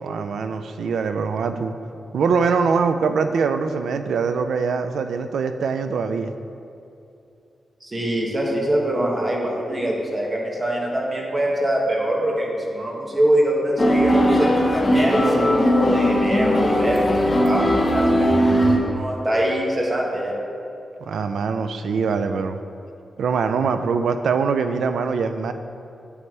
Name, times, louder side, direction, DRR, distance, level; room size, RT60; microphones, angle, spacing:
voice 1, 0.0-1.7 2.1-6.3 21.0-22.6 23.2-25.5, right 5 dB, 85° right, 9 dB, 0.4 m, -23 dB
voice 2, 7.8-14.5 14.9-20.3, right 1 dB, 30° right, -2 dB, 1.9 m, -23 dB
sound 1, 13.8-18.8, equal, 30° left, 1.2 m, -19 dB
9.4 x 8.6 x 3.3 m, 2.6 s
cardioid pair, 80°, 0 cm